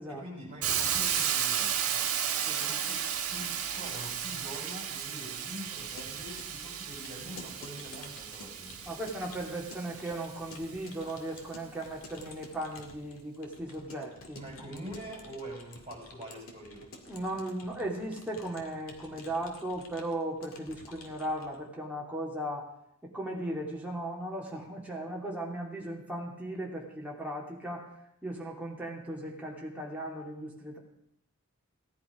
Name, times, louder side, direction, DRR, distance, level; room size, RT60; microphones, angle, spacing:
voice 1, 0.0-8.9 14.4-16.9, equal, 30° right, -1 dB, 6.0 m, -45 dB
Hiss, 0.6-10.5, right 8 dB, 85° right, 1.6 m, -34 dB
Keyboard (musical) / Computer keyboard, 5.5-21.6, left 2 dB, 70° left, 2.0 m, -52 dB
voice 2, 8.8-14.4 17.1-22.7 23.0-27.9 28.2-30.8, right 1 dB, 5° right, -3 dB, 2.8 m, -37 dB
17.0 x 10.5 x 5.1 m, 0.74 s
head